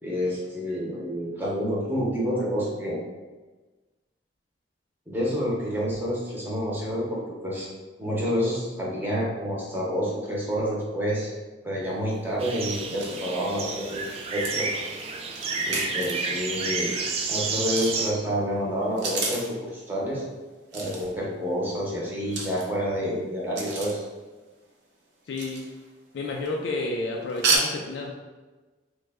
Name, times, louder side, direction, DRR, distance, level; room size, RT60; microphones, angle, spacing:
voice 1, 0.0-3.0 5.1-7.7 8.0-11.3 11.6-14.7 15.6-16.9 17.3-20.2 20.7-24.0, equal, 10° right, -5 dB, 0.7 m, -28 dB
sound 1, 11.9-12.0 12.1-12.2 12.7-12.8 13.0-13.5 14.4-16.3 17.6-18.1 18.8-19.6 20.7-21.2 22.2-23.0 23.6-24.1 25.3-25.9 26.2-26.6 27.3-27.6, right 4 dB, 70° right, 0.7 m, -32 dB
sound 2, 12.4-18.1, right 4 dB, 35° right, 0.3 m, -30 dB
voice 2, 25.3-25.6 26.1-28.1, left 2 dB, 80° left, 0 dB, 0.4 m, -30 dB
3.1 x 2.2 x 3.4 m, 1.2 s
head